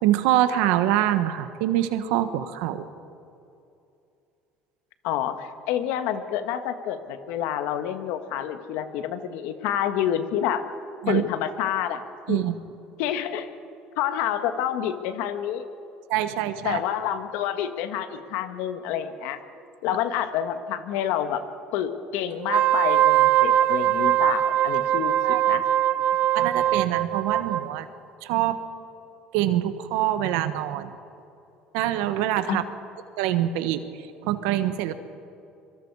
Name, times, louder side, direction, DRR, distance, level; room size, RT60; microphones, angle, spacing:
voice 1, 0.0-2.9 11.0-11.2 12.3-12.6 16.1-16.8 25.2-25.4 26.3-27.9 28.2-28.6 29.3-30.9 31.7-32.6 33.2-33.8 34.2-34.9, right 13 dB, 80° right, 10 dB, 1.4 m, -24 dB
voice 2, 5.0-10.6 11.1-12.0 12.3-12.4 13.0-13.5 14.0-15.6 16.6-19.4 19.8-21.4 21.7-25.6 32.5-32.6, left 10 dB, 80° left, 9 dB, 1.6 m, -28 dB
Wind instrument woodwind instrument, 22.4-27.7, right 12 dB, 60° right, 0.6 m, -21 dB
25.5 x 23.5 x 4.9 m, 2.6 s
supercardioid pair, 95°, 3 cm